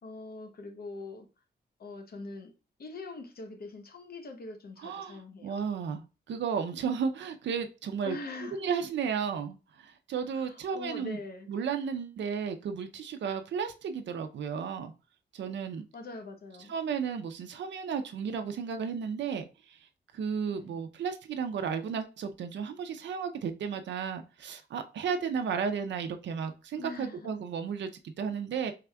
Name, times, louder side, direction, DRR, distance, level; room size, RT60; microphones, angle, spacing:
voice 1, 0.0-1.3 1.8-2.5 2.8-5.6 8.0-8.6 10.3-11.5 15.9-16.7 20.4-20.8 26.8-27.3, left 3 dB, 60° left, 0.8 m, -43 dB
voice 2, 4.8-8.2 8.5-11.2 11.5-14.9 15.3-15.9 16.7-19.8 20.1-28.7, right 6 dB, 85° right, 0.5 m, -33 dB
4.7 x 3.4 x 2.2 m
cardioid pair, 90°, 18 cm